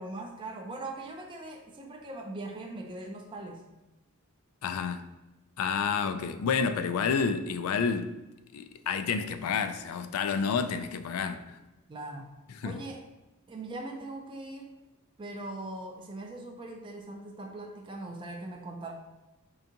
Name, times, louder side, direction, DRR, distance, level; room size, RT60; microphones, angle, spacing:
voice 1, 0.0-3.6 11.9-12.3 12.6-13.0 13.5-14.7 15.2-18.9, right 2 dB, 25° right, 0.4 m, -40 dB
voice 2, 4.6-5.0 5.6-8.1 8.5-11.4 12.6-12.8, left 6 dB, 85° left, 0.3 m, -29 dB
3.8 x 3.4 x 2.8 m
head